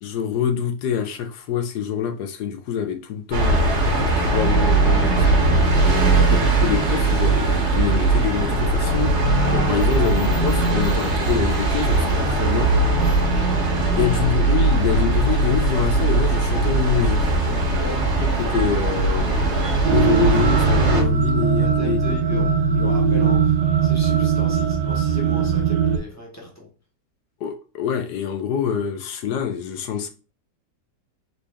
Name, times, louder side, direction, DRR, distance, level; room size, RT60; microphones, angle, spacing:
voice 1, 0.0-5.7 6.6-9.1 9.5-12.7 13.9-17.3 18.4-19.3 19.9-22.0 22.3-22.5 22.8-22.9 27.4-30.1, left 8 dB, 70° left, 1.1 m, -25 dB
sound 1, 3.3-21.0, right 2 dB, 45° right, 1.1 m, -19 dB
voice 2, 6.0-6.4 14.0-14.2 17.7-18.1 21.6-26.7, left 1 dB, 15° left, 0.7 m, -36 dB
sound 2, 19.8-26.0, right 6 dB, 75° right, 1.1 m, -20 dB
3.9 x 3.2 x 3.4 m
omnidirectional pair, 2.0 m